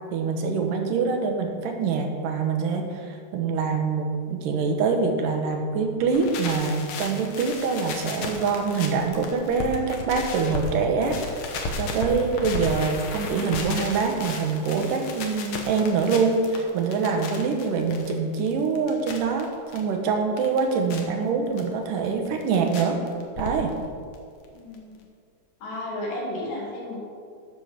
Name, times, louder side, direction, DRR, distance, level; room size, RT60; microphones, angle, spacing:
voice 1, 0.1-11.2 11.8-23.0 23.4-23.8, right 5 dB, 85° right, 4 dB, 2.6 m, -25 dB
sound 1, 6.0-10.7 11.0-19.8 20.2-21.0 21.6-21.7 22.0-22.8 23.1-23.9 24.1-24.2 24.4-24.5 24.7-24.8, left 3 dB, 65° left, 2.1 m, -34 dB
voice 2, 24.5-25.0 25.6-27.0, left 1 dB, 90° left, -4 dB, 3.9 m, -33 dB
10.5 x 6.5 x 5.8 m, 2.2 s
omnidirectional pair, 3.7 m